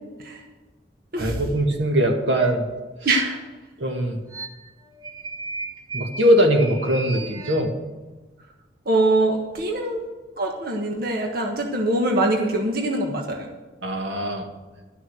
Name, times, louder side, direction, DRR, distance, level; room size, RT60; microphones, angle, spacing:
voice 1, 1.2-2.7 3.8-4.2 5.9-7.7 13.8-14.5, equal, 85° right, 3 dB, 1.9 m, -21 dB
sound 1, 2.4-2.6 4.3-4.7 5.0-7.6, right 1 dB, 20° right, 1.2 m, -33 dB
voice 2, 3.0-3.4 8.8-10.0 10.4-13.5, right 2 dB, 55° right, 1 dB, 1.4 m, -23 dB
12.5 x 6.5 x 7.9 m, 1.2 s
head